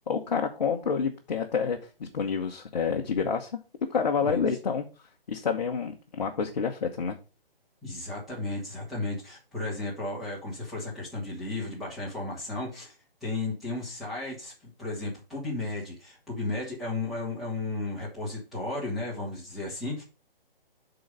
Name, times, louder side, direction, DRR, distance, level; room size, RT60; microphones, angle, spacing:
voice 1, 0.1-3.5 3.9-4.8 5.3-7.2, left 6 dB, 45° left, 2 dB, 1.1 m, -28 dB
voice 2, 7.8-12.9 13.2-20.0, left 2 dB, ahead, -8 dB, 1.9 m, -34 dB
7.5 x 4.0 x 6.7 m, 0.32 s
hypercardioid pair, 165°, 30 cm